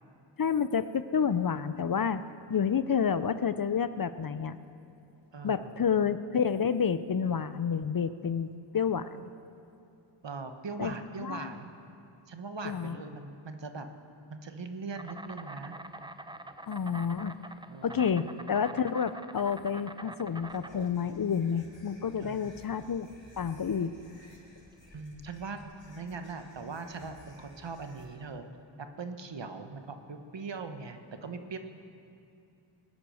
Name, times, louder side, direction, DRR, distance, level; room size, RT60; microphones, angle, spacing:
voice 1, 0.4-2.2 2.5-4.6 5.4-8.5 8.7-9.3 10.8-11.5 12.6-13.0 16.7-17.4 17.8-23.1 23.4-24.0, left 7 dB, 45° left, 13 dB, 0.5 m, -29 dB
voice 2, 5.3-5.8 10.2-11.7 12.3-13.9 14.3-15.7 17.7-18.1 22.2-22.5 24.9-28.5 28.8-31.6, right 4 dB, 65° right, 7 dB, 1.2 m, -41 dB
Insect, 14.9-24.9, right 2 dB, 10° right, 0.5 m, -46 dB
sound 1, 20.4-28.0, left 1 dB, 70° left, 3.4 m, -57 dB
20.5 x 9.7 x 6.4 m, 2.7 s
wide cardioid pair, 65°, 47 cm